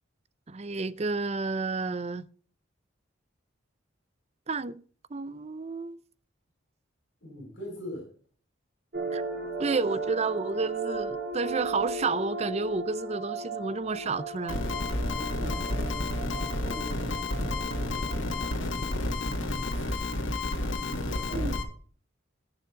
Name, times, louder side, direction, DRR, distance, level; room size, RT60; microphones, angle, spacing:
voice 1, 0.5-2.3 4.5-4.8 5.1-6.0 9.1-9.2 9.6-14.6 21.3-21.5, right 4 dB, 35° right, 0.5 m, -31 dB
voice 2, 7.2-8.1 15.1-19.2 20.7-21.6, left 1 dB, 65° left, 6.0 m, -43 dB
sound 1, 8.9-18.7, right 4 dB, 55° right, 3.6 m, -36 dB
sound 2, 14.5-21.6, left 2 dB, 80° left, 2.3 m, -30 dB
15.0 x 7.2 x 3.9 m
head